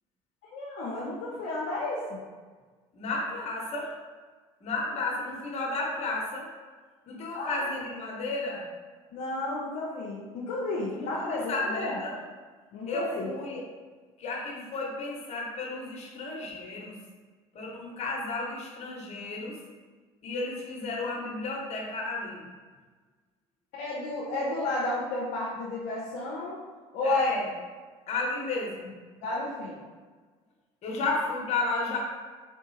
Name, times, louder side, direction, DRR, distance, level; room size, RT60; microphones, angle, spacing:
voice 1, 0.4-2.2 7.3-7.7 9.1-12.0 12.7-13.3 23.7-26.6 26.9-27.3 29.2-29.8, left 2 dB, 70° left, -5 dB, 0.6 m, -32 dB
voice 2, 2.9-3.9 4.6-6.5 7.1-8.6 10.9-12.2 12.9-13.6 14.2-16.9 17.5-19.6 20.2-22.4 27.0-27.5 28.1-28.9 30.8-32.0, left 3 dB, 55° left, -2 dB, 1.0 m, -33 dB
3.7 x 2.6 x 2.7 m, 1.4 s
supercardioid pair, 75°, 14 cm